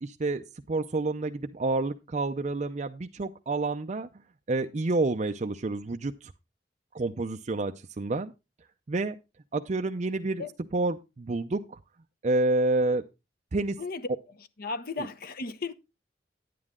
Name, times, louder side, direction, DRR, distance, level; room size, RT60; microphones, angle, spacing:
voice 1, 0.0-4.1 4.5-6.3 6.9-8.3 8.9-9.2 9.5-10.4 10.7-11.8 12.2-13.0 13.5-13.8, right 2 dB, 40° right, 0.5 m, -29 dB
voice 2, 13.8-15.7, left 3 dB, 55° left, 0.8 m, -36 dB
9.7 x 9.4 x 3.6 m
head